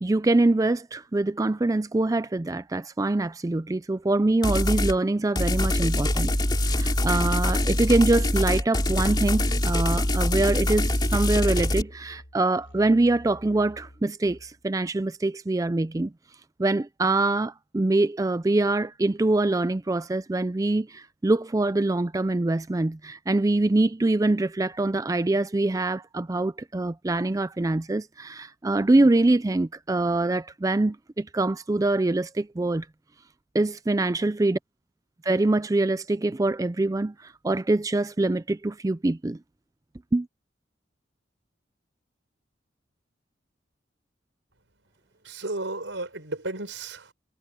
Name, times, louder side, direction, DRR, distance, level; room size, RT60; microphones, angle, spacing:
voice 1, 0.0-6.3 6.7-16.1 16.6-32.9 33.5-34.6 35.2-39.4 40.1-40.3, right 2 dB, 20° right, 0.4 m, -24 dB
sound 1, 4.4-5.0 5.4-11.8, left 1 dB, 25° left, 3.0 m, -24 dB
Musical instrument, 7.1-14.7, equal, 80° left, 6.4 m, -48 dB
voice 2, 45.2-47.1, right 2 dB, 85° right, 4.7 m, -33 dB
head